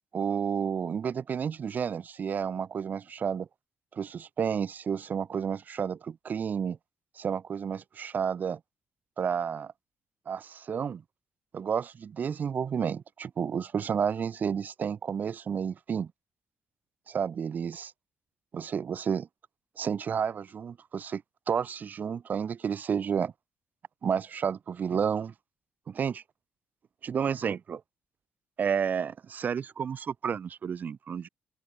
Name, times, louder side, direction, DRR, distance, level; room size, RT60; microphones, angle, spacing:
voice 1, 0.1-3.5 3.9-6.8 7.2-8.6 9.2-9.7 10.3-11.0 11.5-16.1 17.1-17.9 18.5-19.3 19.8-21.2 21.5-23.3 24.0-25.3 25.9-26.2 27.0-27.8 28.6-31.3, right 7 dB, 45° right, 3.4 m, -31 dB
open air
cardioid pair, 130°, 4 cm